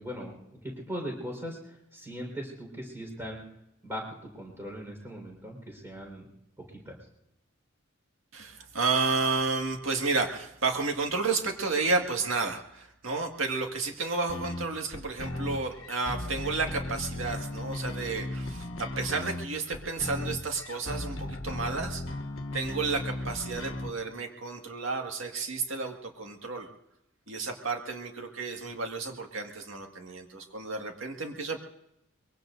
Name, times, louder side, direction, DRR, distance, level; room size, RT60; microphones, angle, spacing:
voice 1, 0.0-3.4 3.8-6.3 6.7-7.0, equal, 10° right, 0 dB, 4.6 m, -39 dB
voice 2, 8.3-22.0 22.5-26.7 27.3-31.6, right 4 dB, 80° right, 3 dB, 2.0 m, -31 dB
sound 1, 14.3-23.9, left 1 dB, 75° left, 1.1 m, -37 dB
23.5 x 23.0 x 2.7 m, 0.83 s
head